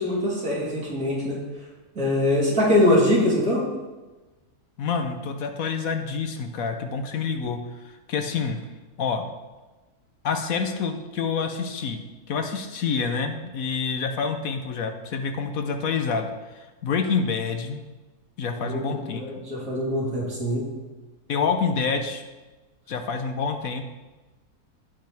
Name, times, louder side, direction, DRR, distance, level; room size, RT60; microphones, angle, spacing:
voice 1, 0.0-1.4 1.9-3.6 18.6-20.6, left 1 dB, 65° right, -6 dB, 3.4 m, -23 dB
voice 2, 4.8-7.6 8.1-8.6 9.0-9.3 10.2-16.3 16.6-17.8 18.4-19.2 19.9-20.0 21.3-22.2 22.9-23.8, left 5 dB, 70° left, 6 dB, 1.2 m, -27 dB
16.5 x 5.6 x 3.5 m, 1.2 s
omnidirectional pair, 1.6 m